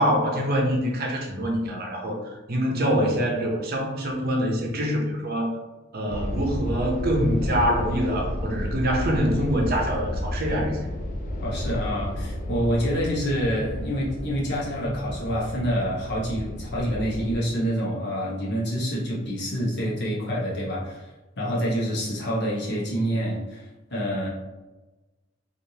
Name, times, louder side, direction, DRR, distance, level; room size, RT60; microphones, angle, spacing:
voice 1, 0.0-2.2 2.5-5.5 5.9-10.8, equal, 50° right, 0 dB, 0.7 m, -25 dB
sound 1, 6.1-17.4, left 1 dB, 40° left, 0.3 m, -32 dB
voice 2, 11.4-21.1 21.4-24.3, equal, 55° left, -5 dB, 1.0 m, -27 dB
3.3 x 2.5 x 2.8 m, 1.1 s
head